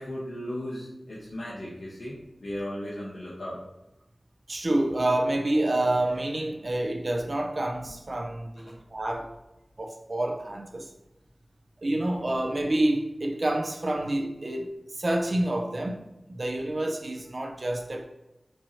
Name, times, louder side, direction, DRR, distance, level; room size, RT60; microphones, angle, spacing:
voice 1, 0.0-3.6 7.8-7.9 8.6-8.8, equal, 85° left, 0.9 m, -36 dB
voice 2, 4.5-9.3 9.8-10.9 11.8-14.7 15.0-18.1, right 1 dB, 55° right, 0.5 m, -28 dB
4.5 x 3.1 x 2.7 m
wide cardioid pair, 65°, 0 cm